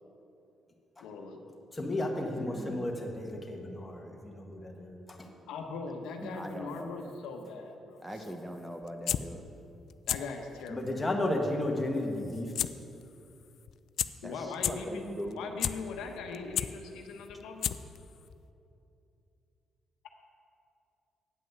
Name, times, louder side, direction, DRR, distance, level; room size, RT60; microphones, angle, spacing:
voice 1, 1.0-1.4 5.5-8.4 10.1-11.1 14.2-15.0 15.4-17.7, left 4 dB, 90° left, 3 dB, 1.0 m, -40 dB
voice 2, 1.7-5.3 10.7-12.5, left 1 dB, 20° left, 1 dB, 1.5 m, -33 dB
voice 3, 2.4-2.9 6.2-7.1 8.0-9.4 14.2-15.4, equal, 10° right, 5 dB, 0.8 m, -41 dB
sound 1, 8.8-9.2 9.9-10.2 10.6-10.7 12.6-12.7 13.0-13.1 13.7-13.8 14.0-14.1 14.5-14.7 15.3-15.7 16.2-16.7 17.3-17.4 17.6-18.0 18.3-18.4, left 10 dB, 70° left, 0.3 m, -29 dB
9.3 x 5.5 x 7.8 m, 2.7 s
cardioid pair, 90°, 0 cm